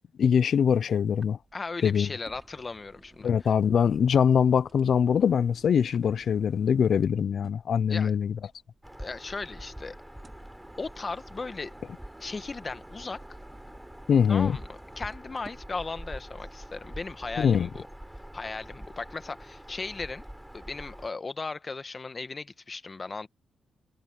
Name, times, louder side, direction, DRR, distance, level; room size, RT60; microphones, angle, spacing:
voice 1, 0.2-1.4 1.8-2.1 3.2-8.4 14.1-14.6 17.4-17.7, left 7 dB, 65° left, 0.6 m, -23 dB
sound 1, 1.1-17.9, right 2 dB, 25° right, 4.5 m, -54 dB
voice 2, 1.5-3.5 7.9-8.1 9.0-10.0 10.8-11.7 12.2-13.2 14.3-17.9 18.3-20.2 20.5-23.3, left 3 dB, 35° left, 1.5 m, -37 dB
Bird vocalization bird call bird song, 8.8-21.1, equal, 5° right, 5.5 m, -45 dB
cardioid pair, 65°, 0 cm